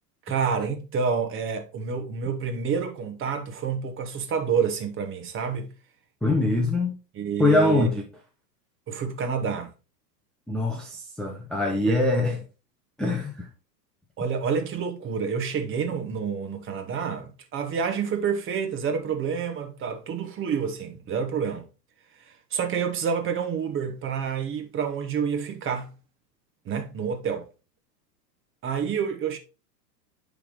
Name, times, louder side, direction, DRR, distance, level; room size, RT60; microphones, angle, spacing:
voice 1, 0.3-5.7 7.1-7.9 8.9-9.7 11.9-12.0 12.2-12.3 14.2-21.6 22.5-25.9 26.6-27.5 28.6-29.4, right 6 dB, 25° right, 1.2 m, -28 dB
voice 2, 6.2-6.9 7.4-8.0 10.5-12.4 13.0-13.5, left 2 dB, ahead, 0.6 m, -23 dB
9.8 x 3.6 x 3.6 m
hypercardioid pair, 115°, 49 cm